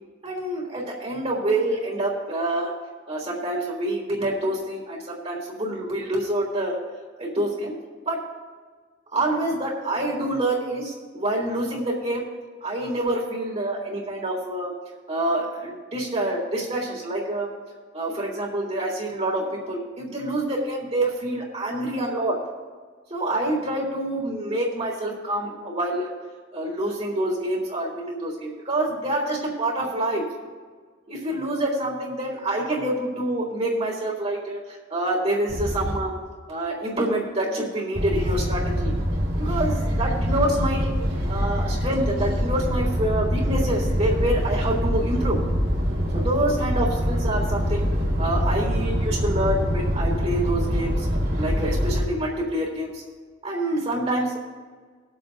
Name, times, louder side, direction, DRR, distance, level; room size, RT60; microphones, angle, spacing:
voice 1, 0.2-2.7 3.1-6.8 7.2-7.8 8.0-8.3 9.1-12.2 12.6-14.7 15.1-17.5 17.9-22.4 23.1-26.1 26.5-30.3 31.1-36.1 36.5-39.0 39.4-40.9 41.3-45.4 46.1-47.9 48.2-51.1 51.3-53.0 53.4-54.4, right 1 dB, 35° right, -3 dB, 3.4 m, -27 dB
sound 1, 35.5-36.0 37.9-52.0, equal, 75° right, 3.1 m, -24 dB
22.0 x 8.1 x 2.6 m, 1.5 s
head